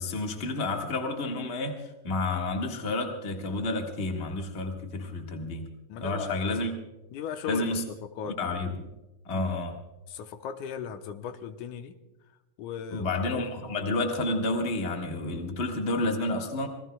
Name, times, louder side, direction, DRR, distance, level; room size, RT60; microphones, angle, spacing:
voice 1, 0.0-5.7 6.0-6.7 7.5-7.8 8.2-8.9 9.2-9.8 12.9-16.7, left 2 dB, 30° left, 2 dB, 1.4 m, -30 dB
voice 2, 5.9-6.4 7.1-8.4 9.3-9.5 10.1-12.0 12.6-13.1, left 7 dB, 85° left, 8 dB, 2.3 m, -37 dB
26.5 x 19.5 x 2.3 m, 1.0 s
omnidirectional pair, 3.5 m